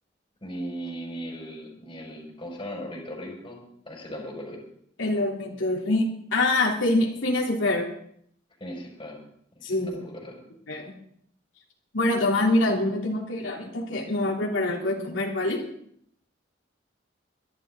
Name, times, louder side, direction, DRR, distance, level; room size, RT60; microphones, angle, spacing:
voice 1, 0.4-3.6 3.9-4.6 8.6-9.2 9.6-9.7 9.9-10.4, equal, 25° left, -1 dB, 5.4 m, -37 dB
voice 2, 5.0-6.1 6.3-7.9 9.6-10.1 10.7-10.9 11.9-15.6, left 2 dB, 90° left, -3 dB, 3.2 m, -25 dB
22.5 x 12.0 x 3.8 m, 0.67 s
head